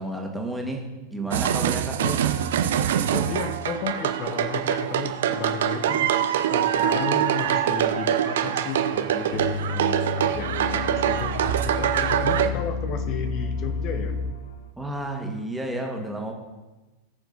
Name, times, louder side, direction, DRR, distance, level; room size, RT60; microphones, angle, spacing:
voice 1, 0.0-2.0 14.8-16.3, right 1 dB, 5° right, 1 dB, 2.1 m, -31 dB
sound 1, 1.3-12.5, right 10 dB, 60° right, 0.7 m, -24 dB
voice 2, 3.1-6.1 6.5-11.4 11.6-14.2, left 5 dB, 40° left, 8 dB, 1.1 m, -33 dB
sound 2, 9.3-14.5, left 4 dB, 60° left, 1.0 m, -31 dB
18.5 x 6.9 x 4.1 m, 1.1 s
figure-of-eight pair, 90°, 0 cm